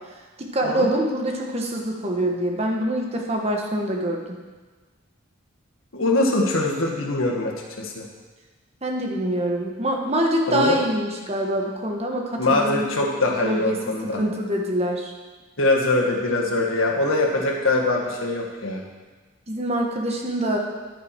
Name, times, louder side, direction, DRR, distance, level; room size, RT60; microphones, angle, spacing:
voice 1, 0.4-4.2 8.8-12.9 13.4-15.1 19.5-20.6, right 1 dB, 30° right, 1 dB, 1.3 m, -25 dB
voice 2, 5.9-8.1 10.5-10.8 12.4-14.2 15.6-18.8, left 2 dB, 75° left, 0 dB, 1.7 m, -23 dB
11.0 x 9.0 x 4.5 m, 1.3 s
head